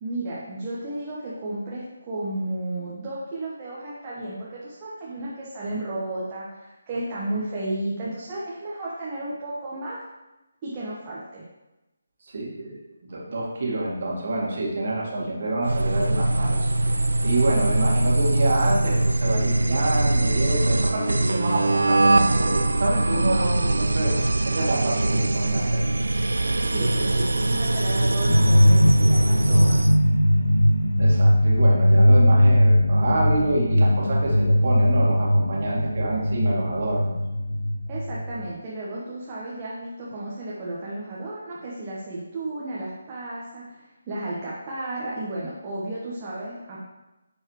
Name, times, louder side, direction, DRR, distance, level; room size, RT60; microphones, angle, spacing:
voice 1, 0.0-10.0 10.6-11.5 15.2-15.3 17.7-17.8 26.6-29.8 37.9-46.8, right 1 dB, 20° right, -7 dB, 1.2 m, -33 dB
voice 2, 12.2-16.9 17.2-24.1 24.4-25.9 31.0-37.1, right 2 dB, 45° right, -4 dB, 2.1 m, -27 dB
sound 1, 15.6-30.0, right 2 dB, 65° right, 0.4 m, -22 dB
sound 2, 28.3-38.5, equal, 85° left, 0.7 m, -19 dB
10.5 x 4.7 x 3.2 m, 1.0 s
figure-of-eight pair, 150°, 0 cm